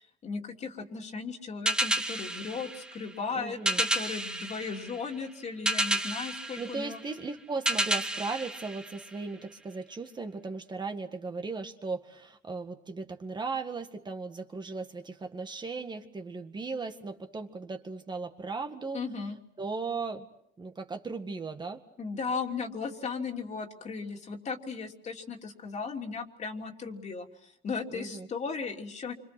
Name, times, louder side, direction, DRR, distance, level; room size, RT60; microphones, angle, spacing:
voice 1, 0.0-7.0 18.9-19.4 22.0-29.1, left 5 dB, 40° left, 3 dB, 3.0 m, -36 dB
sound 1, 1.7-9.5, right 1 dB, 5° right, 1.5 m, -32 dB
voice 2, 3.3-3.8 6.6-19.0 19.6-20.3 20.6-21.8 27.9-28.3, right 4 dB, 25° right, 6 dB, 1.9 m, -37 dB
28.5 x 26.0 x 6.1 m, 0.71 s
cardioid pair, 105°, 17 cm